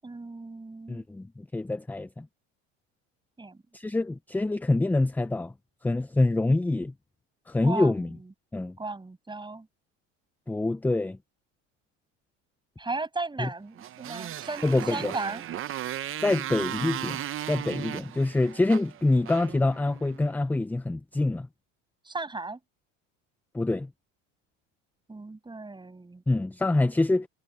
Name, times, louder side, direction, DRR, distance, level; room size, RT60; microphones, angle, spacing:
voice 1, 0.0-1.1 3.4-3.6 7.6-8.3 8.8-9.7 12.8-15.4 22.0-22.6 25.1-26.2, right 3 dB, 15° right, 7.4 m, -36 dB
voice 2, 0.9-2.3 3.7-5.5 5.8-6.9 7.5-8.1 8.5-8.7 10.5-11.2 13.4-13.5 14.6-15.1 16.2-17.2 17.5-21.5 23.5-23.9 26.3-27.3, left 2 dB, 5° left, 0.4 m, -25 dB
Motorcycle, 13.7-20.3, right 12 dB, 35° right, 0.8 m, -36 dB
supercardioid pair, 110°, 34 cm